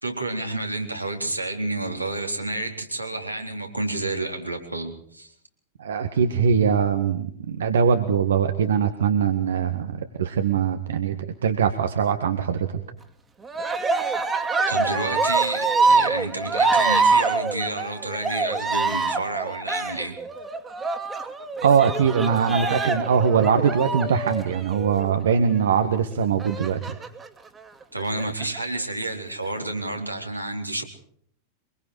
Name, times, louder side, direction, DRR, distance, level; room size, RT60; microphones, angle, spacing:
voice 1, 0.0-5.3 14.7-20.2 27.9-30.8, right 2 dB, 85° right, 2 dB, 3.9 m, -30 dB
voice 2, 5.8-11.2 11.4-12.8 21.6-26.9, right 7 dB, 65° right, 8 dB, 1.6 m, -22 dB
Cheering, 13.5-25.2 26.4-27.3 28.0-28.6, right 4 dB, 15° right, 2.3 m, -25 dB
24.5 x 23.0 x 4.8 m, 0.62 s
figure-of-eight pair, 90°, 0 cm